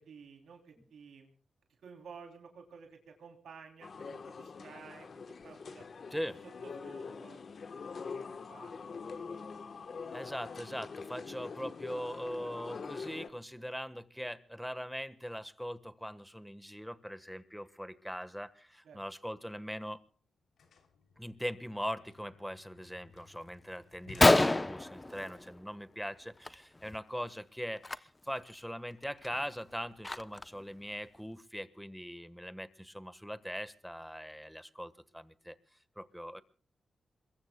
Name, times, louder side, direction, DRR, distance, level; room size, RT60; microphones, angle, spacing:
voice 1, 0.0-1.3 1.8-5.1 5.4-5.9 6.4-7.4 7.9-9.3 18.8-19.0 25.1-25.3, right 6 dB, 85° right, 3 dB, 3.2 m, -53 dB
sound 1, 3.8-13.3, left 5 dB, 60° left, 1.2 m, -44 dB
voice 2, 10.1-20.0 21.2-35.5 36.0-36.4, equal, ahead, 12 dB, 1.4 m, -41 dB
sound 2, 19.7-19.8 20.0-25.1, left 5 dB, 85° left, 3.2 m, -59 dB
Gunshot gunfire, 23.5-23.6 23.9-24.0 24.2-25.8 26.1-26.5 26.7-27.0 27.8-28.0 28.5-28.6 29.0-30.6, left 2 dB, 20° left, 0.7 m, -28 dB
27.0 x 22.0 x 2.3 m, 0.42 s
cardioid pair, 75°, 0 cm